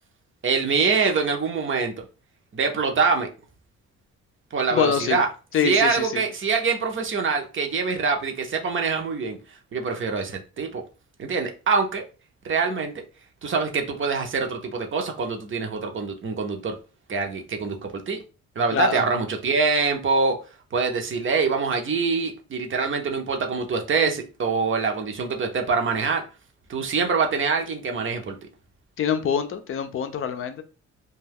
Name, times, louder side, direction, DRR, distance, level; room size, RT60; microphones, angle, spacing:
voice 1, 0.4-2.0 2.5-3.3 4.5-5.3 5.6-9.4 9.7-10.8 11.2-12.0 12.4-13.0 13.4-16.8 17.1-18.2 18.6-20.4 20.7-26.2 26.7-28.4, right 4 dB, 40° right, 0.7 m, -24 dB
voice 2, 4.7-5.2 5.5-6.2 18.7-19.0 29.0-30.6, left 7 dB, 45° left, 0.5 m, -25 dB
2.3 x 2.2 x 3.4 m
cardioid pair, 90°, 30 cm